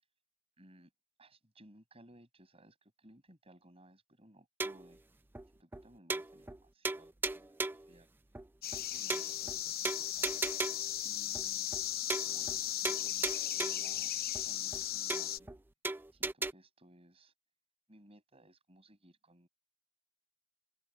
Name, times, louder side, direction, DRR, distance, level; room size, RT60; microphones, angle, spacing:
voice 1, 0.6-0.9 1.2-5.0 5.6-8.1 8.7-10.4 11.0-11.7 12.1-14.1 14.4-15.5 16.1-17.3 17.9-19.5, right 1 dB, 30° right, 6.6 m, -61 dB
sound 1, 4.6-4.9 5.3-5.4 5.7-5.8 6.1-6.6 6.8-7.9 8.3-8.4 8.7-8.8 9.1-9.6 9.8-10.9 11.3-11.4 11.7-11.8 12.1-12.6 12.8-13.9 14.3-14.4 14.7-14.8 15.1-15.6 15.8-16.5, right 3 dB, 10° right, 0.4 m, -37 dB
sound 2, 8.6-15.4, left 11 dB, 45° left, 0.9 m, -36 dB
head